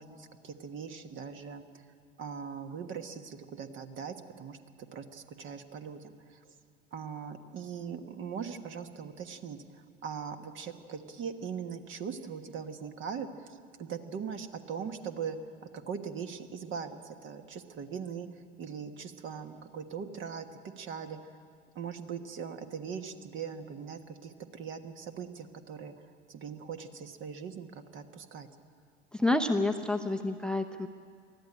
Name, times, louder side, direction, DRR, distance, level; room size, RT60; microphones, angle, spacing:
voice 1, 0.0-1.6 2.2-6.4 6.9-15.4 15.7-18.3 18.6-21.3 21.7-25.9 26.3-28.5, right 6 dB, 40° right, 8 dB, 1.4 m, -40 dB
voice 2, 29.1-30.9, left 2 dB, 5° left, 9 dB, 0.7 m, -28 dB
20.0 x 13.5 x 9.9 m, 2.3 s
figure-of-eight pair, 75°, 31 cm